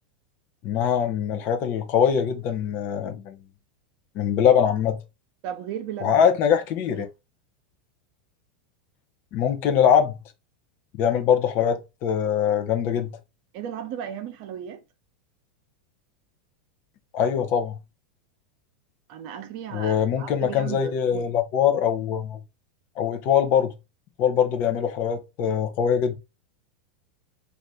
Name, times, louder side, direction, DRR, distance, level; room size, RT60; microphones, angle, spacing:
voice 1, 0.6-3.4 4.1-5.0 6.0-7.1 9.3-10.2 11.0-13.2 17.1-17.8 19.7-22.4 23.0-23.7 24.2-26.2, left 8 dB, 50° left, 0.7 m, -22 dB
voice 2, 5.4-6.3 6.9-7.1 13.5-14.8 19.1-21.3, right 9 dB, 55° right, 0.6 m, -35 dB
2.7 x 2.4 x 3.4 m
hypercardioid pair, 100°, 5 cm